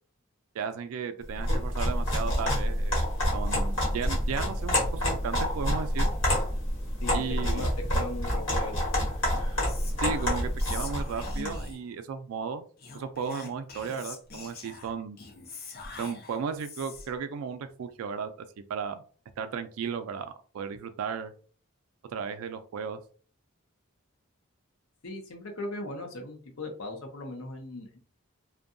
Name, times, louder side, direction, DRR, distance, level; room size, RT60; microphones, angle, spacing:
voice 1, 0.5-3.0 3.3-6.1 7.1-7.6 10.0-12.6 12.9-15.2 16.0-18.3 18.7-19.0 19.4-21.3 22.1-23.0, right 6 dB, 80° right, 10 dB, 0.3 m, -35 dB
sound 1, 1.3-11.6, equal, 60° left, 1.1 m, -28 dB
voice 2, 7.0-9.0 25.0-28.0, left 2 dB, 85° left, 2 dB, 0.7 m, -38 dB
Whispering, 9.6-11.9 12.8-17.2, left 4 dB, 45° left, 0.5 m, -44 dB
2.6 x 2.2 x 2.5 m, 0.42 s
head